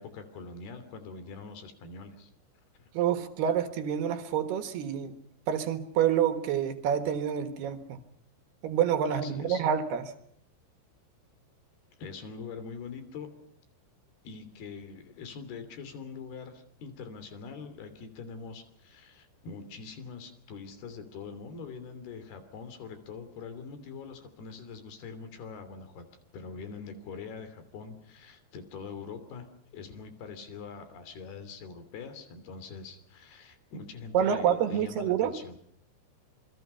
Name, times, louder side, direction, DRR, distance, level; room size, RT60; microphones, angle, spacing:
voice 1, 0.0-2.3 2.8-2.9 9.1-9.6 12.0-13.3 14.2-26.1 26.3-29.5 29.7-35.6, left 5 dB, 60° left, 10 dB, 4.7 m, -43 dB
voice 2, 2.9-5.1 5.5-8.0 8.6-10.0 34.1-35.3, right 9 dB, 65° right, 9 dB, 3.3 m, -27 dB
27.5 x 23.0 x 5.7 m, 0.64 s
omnidirectional pair, 5.3 m